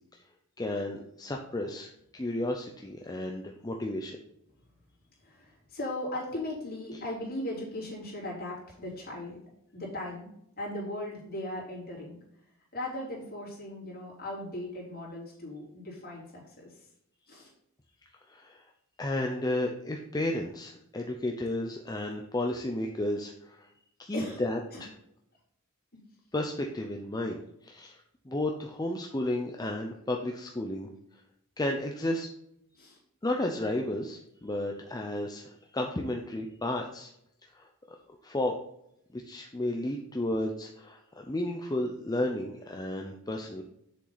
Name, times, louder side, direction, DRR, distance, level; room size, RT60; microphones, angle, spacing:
voice 1, 0.6-4.2 18.3-18.6 19.0-23.7 24.0-24.9 26.3-30.9 31.6-32.3 33.2-37.1 37.5-37.7 38.2-38.5 39.1-43.6, left 1 dB, 20° left, 1 dB, 0.6 m, -33 dB
voice 2, 5.2-9.4 9.7-12.2 12.7-16.9 17.3-17.5 24.1-24.4 24.7-24.8 32.8-33.0, left 1 dB, 45° left, -5 dB, 3.8 m, -38 dB
7.7 x 6.8 x 4.1 m, 0.76 s
head